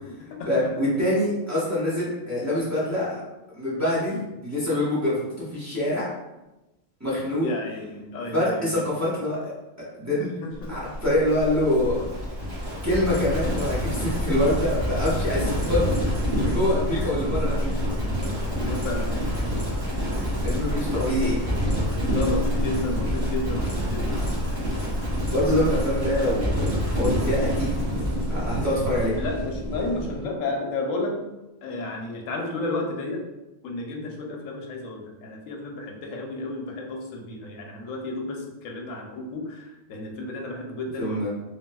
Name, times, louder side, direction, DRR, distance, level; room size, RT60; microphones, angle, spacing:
voice 1, 0.4-3.2 3.5-6.1 7.0-7.5 8.3-9.5 10.0-10.3 10.7-12.0 12.8-15.8 16.3-17.7 20.4-21.4 25.3-27.8 28.3-29.1 41.0-41.3, left 1 dB, 15° right, -9 dB, 0.8 m, -25 dB
voice 2, 7.4-8.8 10.4-10.8 18.5-19.2 20.1-20.2 22.1-24.3 29.2-31.2 31.6-33.2 33.6-41.3, left 2 dB, 85° left, 2 dB, 1.0 m, -32 dB
Livestock farm animals working animals, 10.6-30.3, equal, 50° right, 1.2 m, -27 dB
3.3 x 2.6 x 2.2 m, 1.0 s
omnidirectional pair, 1.3 m